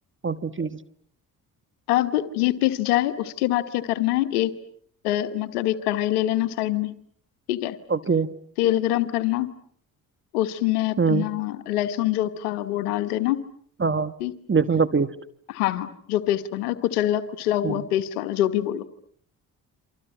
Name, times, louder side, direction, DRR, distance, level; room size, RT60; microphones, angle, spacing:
voice 1, 0.2-0.8 7.9-8.3 11.0-11.3 13.8-14.1 14.5-15.1 17.6-17.8, right 5 dB, 25° right, 13 dB, 1.5 m, -23 dB
voice 2, 1.9-4.5 5.0-7.0 7.5-7.7 8.6-9.5 10.3-13.4 14.2-14.3 15.5-18.8, left 14 dB, 90° left, 11 dB, 1.3 m, -24 dB
29.0 x 25.5 x 7.3 m, 0.62 s
hypercardioid pair, 45°, 44 cm